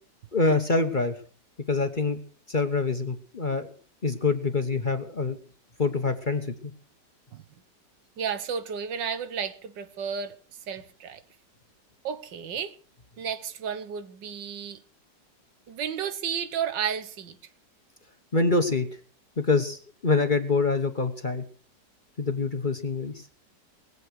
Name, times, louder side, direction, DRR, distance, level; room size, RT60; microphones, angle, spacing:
voice 1, 0.3-1.1 1.7-2.2 2.5-3.7 4.0-5.4 5.8-6.7 18.3-18.9 19.4-21.4 22.2-23.1, left 3 dB, 30° left, 1.1 m, -25 dB
voice 2, 8.2-10.4 10.7-11.2 12.0-12.7 13.2-14.8 15.7-17.4, right 7 dB, 80° right, 1.8 m, -32 dB
20.0 x 8.2 x 6.4 m
omnidirectional pair, 1.9 m